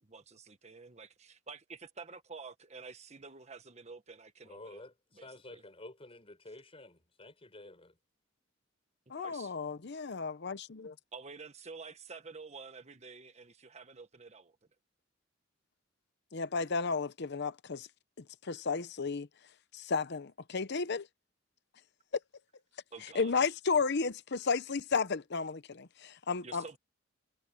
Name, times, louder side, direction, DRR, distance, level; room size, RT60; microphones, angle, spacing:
voice 1, 0.0-4.9 5.1-5.6 9.2-9.5 11.1-14.6 22.9-23.4 26.4-26.8, right 4 dB, 35° right, 1.4 m, -49 dB
voice 2, 4.4-8.0, left 2 dB, 30° left, 5.3 m, -51 dB
voice 3, 9.1-10.9 16.3-17.9 18.2-19.3 19.7-21.1 23.1-26.6, left 4 dB, 60° left, 0.8 m, -33 dB
head